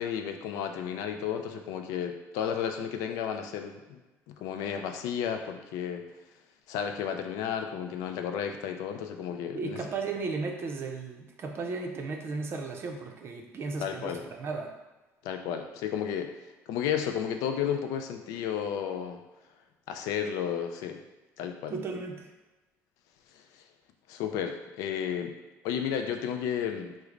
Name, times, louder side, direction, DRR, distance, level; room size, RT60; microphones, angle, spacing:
voice 1, 0.0-4.0 4.3-6.0 6.7-9.9 13.8-14.2 15.2-16.3 16.7-19.2 19.9-21.0 21.4-21.7 23.3-23.6 24.1-25.4 25.6-26.9, left 8 dB, 85° left, 5 dB, 0.3 m, -32 dB
voice 2, 9.5-14.7 21.7-22.3, right 4 dB, 45° right, 3 dB, 0.5 m, -35 dB
3.2 x 2.0 x 3.6 m, 1.1 s
cardioid pair, 110°, 6 cm